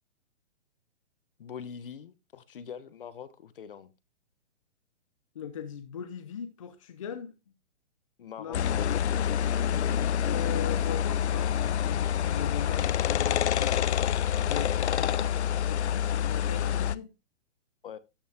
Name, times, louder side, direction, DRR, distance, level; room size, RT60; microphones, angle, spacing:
voice 1, 1.4-3.9 8.2-9.1 17.8-18.0, left 7 dB, 50° left, 1.0 m, -43 dB
voice 2, 5.3-7.3 8.4-8.6 9.7-14.0 14.4-15.3 15.6-17.1, left 8 dB, 30° left, 0.7 m, -40 dB
sound 1, 8.5-17.0, left 9 dB, 70° left, 0.7 m, -27 dB
12.5 x 7.0 x 3.5 m
hypercardioid pair, 175°, 35 cm